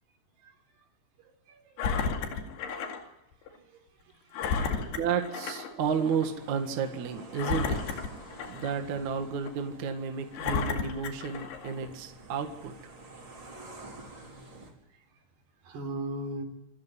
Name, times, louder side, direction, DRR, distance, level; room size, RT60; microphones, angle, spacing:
voice 1, 1.5-1.8 2.2-2.4 2.9-3.1 3.5-5.0 13.8-14.0 15.6-16.4, right 1 dB, 75° right, 3 dB, 5.8 m, -41 dB
Engine, 1.8-3.0 3.5-3.6 4.3-5.7 6.1-6.3 7.3-8.9 9.5-9.6 10.3-11.8 12.5-12.6, left 5 dB, 75° left, 4.3 m, -32 dB
voice 2, 4.9-8.0 8.5-12.9, right 6 dB, 55° right, 5 dB, 2.8 m, -32 dB
sound 1, 5.8-14.7, right 2 dB, 25° right, 5.1 m, -49 dB
27.5 x 14.5 x 9.9 m, 0.86 s
omnidirectional pair, 4.8 m